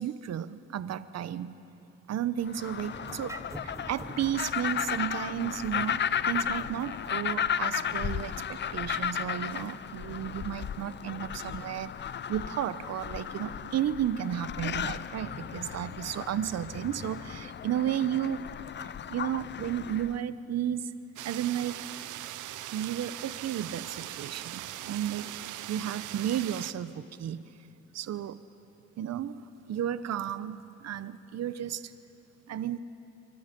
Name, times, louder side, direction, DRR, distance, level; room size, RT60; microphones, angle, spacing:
voice 1, 0.0-1.5 2.1-3.3 3.6-6.0 6.3-11.9 12.3-18.5 19.1-20.8 21.2-21.7 22.7-25.3 25.7-27.4 27.9-28.4 29.0-29.4 29.7-31.8 32.5-32.8, right 10 dB, 60° right, 14 dB, 0.9 m, -33 dB
sound 1, 2.5-20.2, left 8 dB, 35° left, 0.5 m, -34 dB
sound 2, 2.9-9.6, right 2 dB, 10° right, 0.8 m, -48 dB
sound 3, 21.2-26.7, right 13 dB, 85° right, 0.8 m, -40 dB
24.5 x 24.0 x 5.3 m, 2.8 s
cardioid pair, 90°, 30 cm